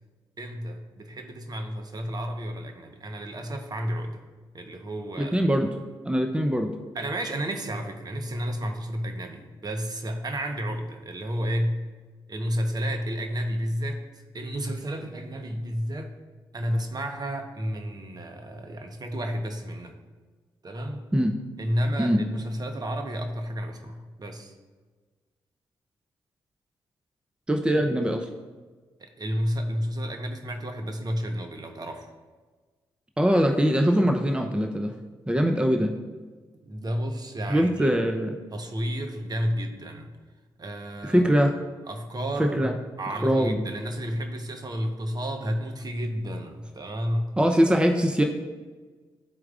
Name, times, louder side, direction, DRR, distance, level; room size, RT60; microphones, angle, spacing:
voice 1, 0.4-4.2 4.5-5.5 6.9-11.8 12.3-16.1 16.5-19.9 20.6-21.1 21.6-24.5 27.8-28.1 29.0-32.1 36.6-38.0 38.5-40.1 40.6-41.3 41.8-42.7 43.0-47.3, equal, 40° right, 5 dB, 1.0 m, -31 dB
voice 2, 5.2-5.7 6.1-6.7 21.1-21.3 22.0-22.2 27.5-28.2 33.2-34.9 35.3-35.9 37.5-38.4 41.0-41.5 42.4-42.7 43.2-43.6 47.4-48.2, equal, 10° right, 4 dB, 0.7 m, -22 dB
12.5 x 4.6 x 2.4 m, 1.4 s
supercardioid pair, 45°, 10 cm